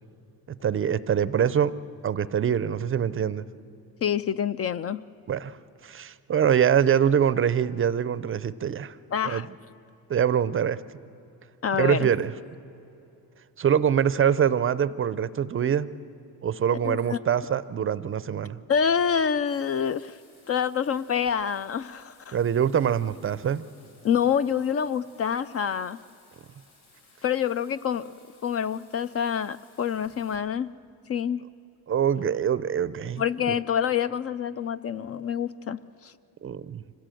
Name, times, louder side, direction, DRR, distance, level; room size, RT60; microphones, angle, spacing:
voice 1, 0.6-1.7 2.0-3.4 5.3-5.6 5.8-9.0 9.2-9.4 10.1-10.8 11.7-12.3 13.6-15.9 16.4-18.6 22.3-23.7 31.9-33.2 33.5-33.6 36.4-36.8, right 8 dB, 35° right, 16 dB, 0.5 m, -24 dB
voice 2, 4.0-5.0 9.1-9.5 11.6-12.1 16.8-17.2 18.7-20.2 20.5-22.4 24.0-26.0 27.2-28.1 28.4-30.7 31.1-31.4 33.2-36.1, left 8 dB, 40° left, 15 dB, 0.4 m, -27 dB
Bathtub (filling or washing), 19.5-30.4, left 2 dB, 80° left, 5.6 m, -59 dB
25.0 x 16.5 x 7.7 m, 2.9 s
cardioid pair, 135°, 39 cm